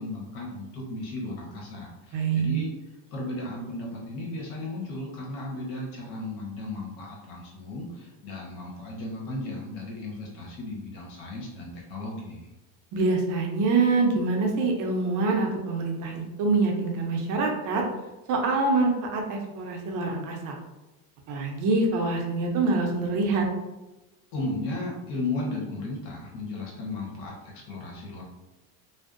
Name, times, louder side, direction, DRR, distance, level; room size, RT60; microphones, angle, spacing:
voice 1, 0.0-2.7 3.1-12.5 24.3-28.2, left 2 dB, 90° left, -2 dB, 1.1 m, -35 dB
voice 2, 2.1-2.5 12.9-17.8 18.3-20.6 21.3-23.5, right 3 dB, 45° right, 1 dB, 0.5 m, -25 dB
2.6 x 2.0 x 2.4 m, 1.0 s
cardioid pair, 150°, 44 cm